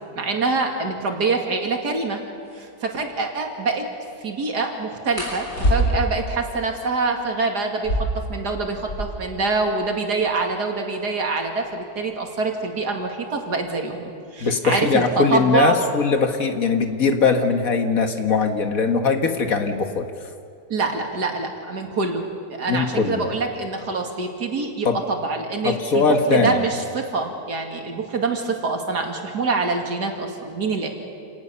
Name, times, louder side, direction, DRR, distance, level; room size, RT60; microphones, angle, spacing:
voice 1, 0.0-2.2 2.5-3.8 4.2-8.0 8.3-15.8 20.7-30.9, right 4 dB, 85° right, 3 dB, 2.9 m, -25 dB
sound 1, 1.9-2.0 2.4-2.7 5.1-6.2 7.7-9.3 9.6-9.7 9.9-10.5 11.1-13.7 14.7-15.0 15.4-15.9 16.2-17.0, right 1 dB, 75° left, 7.4 m, -27 dB
voice 2, 14.4-20.0 22.7-23.3 24.9-25.0 25.6-26.6, left 4 dB, 60° left, 6 dB, 1.9 m, -20 dB
28.0 x 18.5 x 7.0 m, 2.5 s
omnidirectional pair, 1.7 m